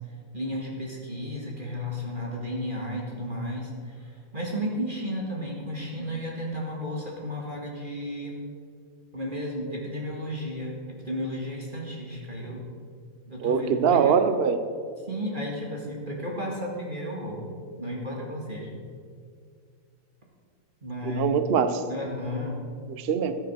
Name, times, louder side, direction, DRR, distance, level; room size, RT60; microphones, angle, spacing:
voice 1, 0.3-8.4 9.1-12.6 13.3-14.2 15.0-17.4 17.8-18.8 20.8-21.3 21.9-22.7, equal, 25° right, -2 dB, 2.0 m, -33 dB
voice 2, 13.4-14.6 21.0-21.8 23.0-23.3, right 7 dB, 60° right, 10 dB, 0.6 m, -22 dB
14.0 x 9.0 x 6.3 m, 2.2 s
omnidirectional pair, 2.1 m